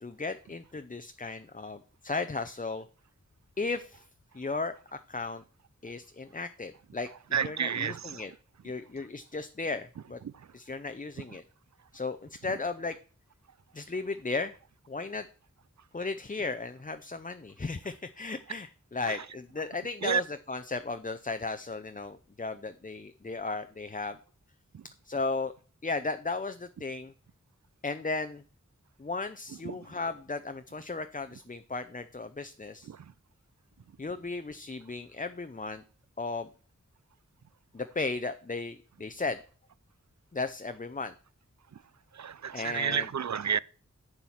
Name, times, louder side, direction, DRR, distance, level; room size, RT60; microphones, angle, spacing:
voice 1, 0.0-2.8 3.6-4.0 4.3-5.4 5.8-7.1 7.4-8.3 8.6-10.2 10.5-11.4 11.9-13.0 13.7-14.5 14.9-15.3 15.9-24.2 25.0-25.5 25.8-27.1 27.8-28.4 29.0-32.9 34.0-35.8 36.2-36.5 37.7-39.4 40.3-41.1 42.5-43.1, left 3 dB, 25° left, 0.6 m, -35 dB
voice 2, 7.3-8.2 10.2-10.3 19.1-19.2 20.0-20.2 24.7-24.8 29.6-29.7 32.9-33.0 42.1-43.6, right 7 dB, 65° right, 0.4 m, -30 dB
8.0 x 7.1 x 5.7 m
wide cardioid pair, 50°, 31 cm